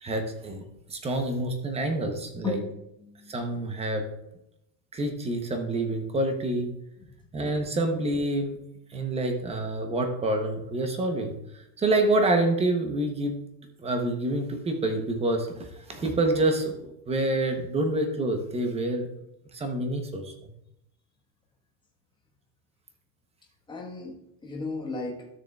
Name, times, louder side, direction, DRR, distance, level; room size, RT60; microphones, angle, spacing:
voice 1, 0.0-0.6 0.9-2.6 3.3-4.0 4.9-6.7 7.3-8.6 8.9-13.4 13.8-16.8 17.1-19.1 19.5-20.3, right 2 dB, 10° right, 5 dB, 0.7 m, -27 dB
voice 2, 2.4-3.5 7.0-7.1 23.7-25.3, left 3 dB, 10° left, -2 dB, 1.2 m, -36 dB
12.5 x 6.6 x 2.3 m, 0.82 s
supercardioid pair, 150°, 50 cm